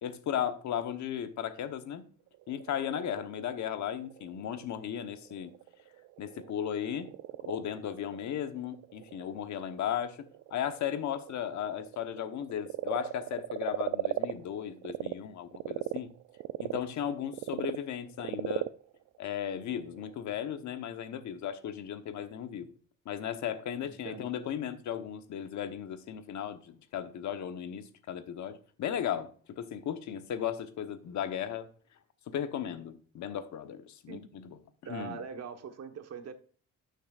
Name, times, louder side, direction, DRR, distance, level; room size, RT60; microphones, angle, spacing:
voice 1, 0.0-2.0 2.5-5.5 6.2-7.1 7.4-10.2 10.5-16.1 16.6-18.7 19.2-22.7 23.0-31.7 32.3-34.6 34.9-35.2, left 9 dB, 70° left, 1.1 m, -36 dB
Frog, 2.3-15.1 15.5-20.2, right 15 dB, 80° right, 0.5 m, -39 dB
voice 2, 23.9-24.2 34.1-34.2 34.8-36.3, right 6 dB, 55° right, 1.4 m, -42 dB
11.5 x 6.5 x 2.5 m
cardioid pair, 90°, 30 cm